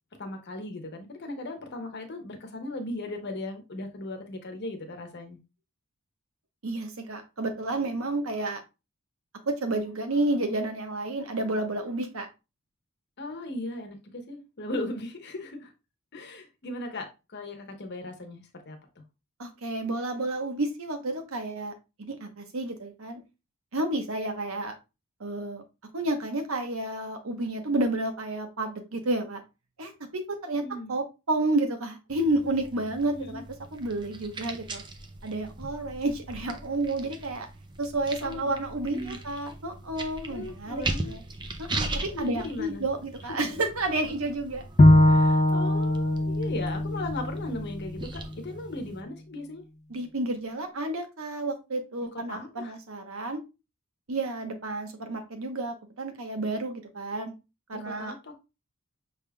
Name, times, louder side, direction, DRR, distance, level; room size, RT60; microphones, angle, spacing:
voice 1, 0.2-5.4 13.2-15.7 16.1-18.8 30.6-30.9 33.1-33.4 38.2-38.5 38.9-39.2 40.2-41.2 42.1-42.8 45.1-49.6 52.3-52.7 57.7-58.4, left 2 dB, 50° left, 1.0 m, -37 dB
voice 2, 6.6-8.6 9.5-12.3 19.4-21.7 22.0-23.2 23.7-24.7 25.2-25.6 25.9-29.4 29.8-30.6 30.9-33.4 33.7-34.8 35.2-37.5 37.8-41.2 41.6-44.6 49.9-53.4 54.1-57.3 57.7-58.1, right 2 dB, 65° right, 1.0 m, -30 dB
sound 1, 32.1-49.0, right 2 dB, 20° right, 0.5 m, -39 dB
Bowed string instrument, 44.8-48.1, left 1 dB, 30° left, 0.5 m, -21 dB
5.9 x 3.5 x 2.2 m
head